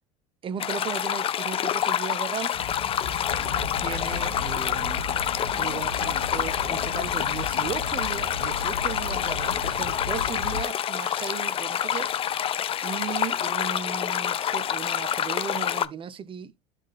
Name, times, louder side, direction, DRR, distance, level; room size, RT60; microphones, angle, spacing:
voice 1, 0.4-2.6 3.8-5.1 5.6-12.1 12.8-16.6, right 8 dB, 30° right, 0.6 m, -36 dB
sound 1, 0.6-15.9, left 10 dB, 35° left, 0.5 m, -27 dB
sound 2, 2.5-10.6, left 5 dB, 70° left, 1.5 m, -44 dB
Chatter, 3.3-10.6, left 4 dB, 85° left, 2.1 m, -35 dB
12.5 x 4.1 x 2.4 m
hypercardioid pair, 75°, 17 cm